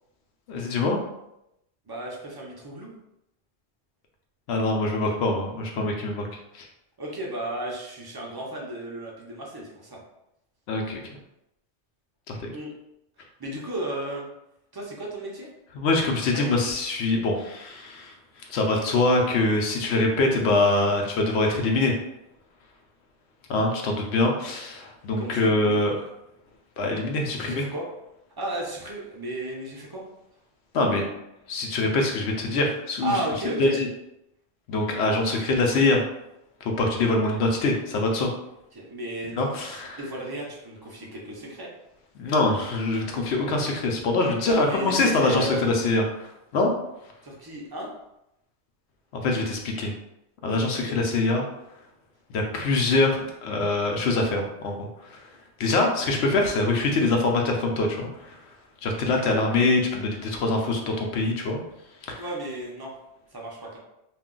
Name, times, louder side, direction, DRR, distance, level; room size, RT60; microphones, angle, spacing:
voice 1, 0.5-1.0 4.5-6.3 6.5-6.7 10.7-11.0 12.3-12.5 15.7-18.1 18.5-21.9 23.5-25.9 26.8-27.6 30.7-31.1 31.5-33.1 33.6-33.9 34.7-36.0 36.6-38.3 39.4-40.0 42.2-46.7 49.1-49.9 50.4-51.4 52.3-55.2 55.6-58.4 58.8-61.6 62.0-62.2, left 2 dB, 70° left, 1 dB, 0.8 m, -24 dB
voice 2, 1.9-2.9 7.0-10.0 12.5-12.7 13.4-14.3 14.7-15.5 16.3-16.6 25.2-25.8 27.4-27.8 28.4-30.0 33.0-33.8 38.7-41.7 44.4-45.6 47.2-47.9 50.7-51.0 56.2-56.3 62.2-62.9 63.3-63.8, right 1 dB, 30° right, -3 dB, 0.4 m, -34 dB
2.4 x 2.2 x 3.7 m, 0.85 s
omnidirectional pair, 1.2 m